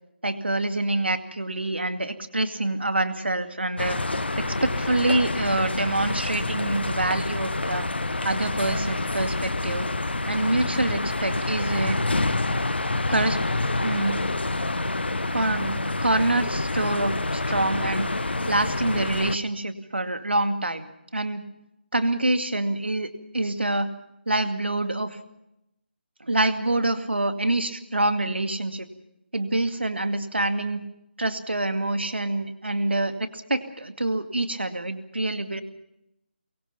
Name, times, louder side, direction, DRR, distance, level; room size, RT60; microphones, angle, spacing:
voice 1, 0.2-4.0 4.4-7.9 8.2-9.9 10.3-12.0 13.1-13.4 13.8-14.2 15.3-18.1 18.5-21.4 21.9-23.9 24.3-25.2 26.2-28.9 29.3-30.8 31.2-35.6, right 2 dB, 70° right, 8 dB, 2.3 m, -26 dB
sound 1, 3.8-19.4, left 2 dB, 65° left, 1.4 m, -27 dB
23.5 x 23.5 x 5.8 m, 0.85 s
figure-of-eight pair, 155°, 6 cm